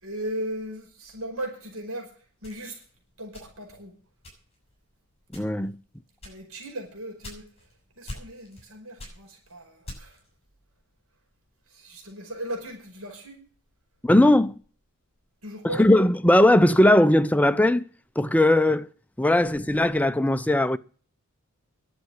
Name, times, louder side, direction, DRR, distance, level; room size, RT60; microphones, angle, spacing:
voice 1, 0.0-2.1 2.4-2.8 3.2-3.9 6.2-7.5 8.0-10.2 11.7-13.4 15.4-15.9, right 1 dB, 70° right, 5.3 m, -37 dB
sound 1, 2.4-3.8 4.2-4.7 5.2-5.7 6.2-7.7 8.1-8.7 9.0-10.3, left 1 dB, 25° left, 6.9 m, -43 dB
voice 2, 5.3-5.8 14.0-14.5 15.6-17.9 18.2-18.9 19.2-20.8, left 1 dB, 5° left, 0.5 m, -19 dB
11.5 x 7.9 x 9.9 m
head